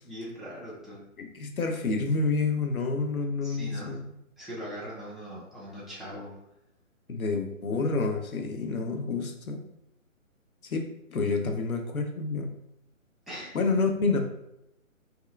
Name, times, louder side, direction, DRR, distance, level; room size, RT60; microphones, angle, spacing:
voice 1, 0.0-1.1 3.4-4.0 4.4-6.4 13.3-13.6, equal, ahead, -8 dB, 0.3 m, -40 dB
voice 2, 1.2-4.0 7.1-9.6 10.6-10.8 11.1-12.5 13.5-14.2, left 3 dB, 85° left, 4 dB, 0.6 m, -28 dB
2.7 x 2.3 x 2.3 m, 0.83 s
figure-of-eight pair, 140°, 41 cm